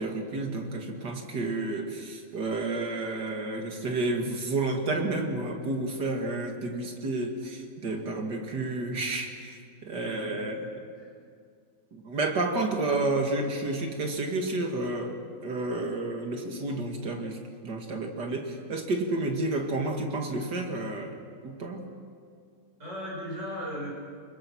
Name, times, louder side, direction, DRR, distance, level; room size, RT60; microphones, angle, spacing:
voice 1, 0.0-10.6 11.9-17.4 17.6-21.1 21.4-21.9, right 2 dB, 55° right, 3 dB, 2.7 m, -30 dB
voice 2, 10.0-10.7 11.0-11.1 22.8-23.9, equal, 30° right, -5 dB, 7.8 m, -37 dB
25.5 x 21.5 x 6.3 m, 2.2 s
omnidirectional pair, 2.3 m